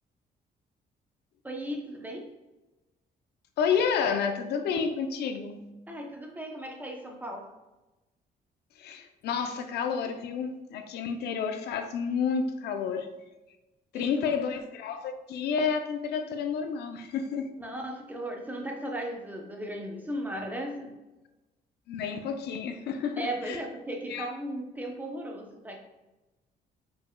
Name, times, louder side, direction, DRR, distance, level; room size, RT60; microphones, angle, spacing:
voice 1, 1.4-2.3 5.9-7.5 13.9-14.4 17.6-21.0 23.2-25.8, right 1 dB, 10° right, 1 dB, 0.6 m, -36 dB
voice 2, 3.6-5.6 8.8-13.1 13.9-17.5 21.9-23.6 24.1-24.3, left 6 dB, 80° left, 7 dB, 0.5 m, -30 dB
5.2 x 4.4 x 2.2 m, 1.0 s
cardioid pair, 150°, 17 cm